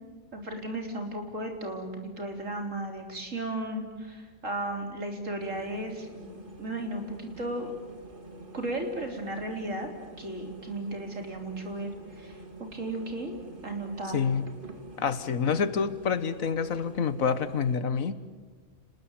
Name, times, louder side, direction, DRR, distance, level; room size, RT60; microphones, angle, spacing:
voice 1, 0.3-7.7 8.5-9.9 10.2-11.9 12.2-12.4 12.7-13.3 13.6-14.3, right 1 dB, 70° right, 3 dB, 4.2 m, -35 dB
sound 1, 5.4-17.8, right 2 dB, 40° right, 2.4 m, -47 dB
voice 2, 14.1-14.4 15.0-18.2, left 6 dB, 90° left, 13 dB, 1.7 m, -27 dB
30.0 x 20.5 x 9.1 m, 1.4 s
omnidirectional pair, 1.4 m